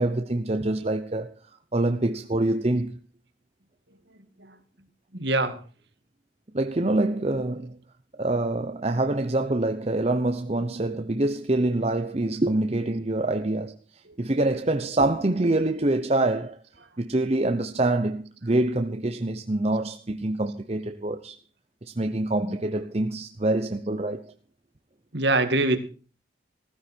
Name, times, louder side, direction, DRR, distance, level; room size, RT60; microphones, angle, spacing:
voice 1, 0.0-1.3 1.7-3.0 6.5-7.8 8.2-16.6 17.0-21.4 21.8-24.3, right 2 dB, 30° right, 0.9 m, -25 dB
voice 2, 5.1-5.6 22.4-22.6 25.1-25.8, right 2 dB, 60° right, 2.3 m, -23 dB
16.0 x 14.5 x 4.5 m
head